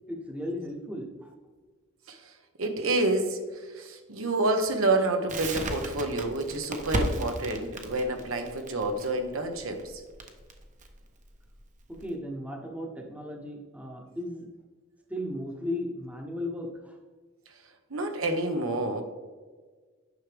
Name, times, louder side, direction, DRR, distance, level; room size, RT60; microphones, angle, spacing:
voice 1, 0.1-1.3 11.9-14.5 15.1-17.0, left 1 dB, 5° right, 1 dB, 1.0 m, -36 dB
voice 2, 2.6-10.0 17.9-19.0, right 2 dB, 80° right, 5 dB, 1.1 m, -28 dB
Crackle, 5.3-12.1, right 1 dB, 35° right, 0.9 m, -35 dB
9.6 x 6.0 x 3.4 m, 1.4 s
head